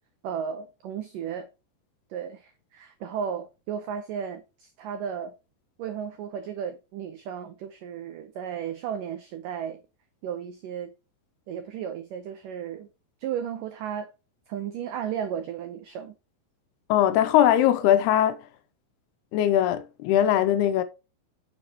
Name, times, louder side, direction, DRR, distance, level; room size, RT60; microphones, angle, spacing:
voice 1, 0.2-1.5 2.1-5.3 5.8-9.8 10.2-10.9 11.5-12.9 13.2-14.1 14.5-16.2, right 8 dB, 90° right, 1.8 m, -34 dB
voice 2, 16.9-18.4 19.3-20.8, left 11 dB, 80° left, 2.5 m, -21 dB
8.5 x 6.9 x 2.9 m
omnidirectional pair, 5.0 m